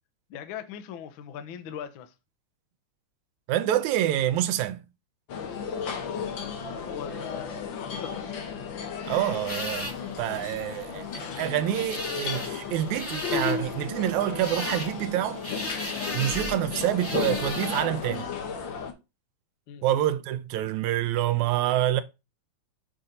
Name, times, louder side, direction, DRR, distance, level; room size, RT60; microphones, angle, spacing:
voice 1, 0.3-2.1 5.9-6.4 6.9-8.3 15.9-16.1 19.7-19.8, left 9 dB, 80° left, 1.1 m, -40 dB
voice 2, 3.5-4.8 9.0-15.4 16.1-18.3 19.8-22.0, right 12 dB, 85° right, 2.0 m, -27 dB
sound 1, 5.3-18.9, left 6 dB, 60° left, 1.4 m, -34 dB
sound 2, 9.5-18.2, left 1 dB, 5° left, 1.6 m, -37 dB
6.4 x 4.2 x 5.2 m
omnidirectional pair, 3.3 m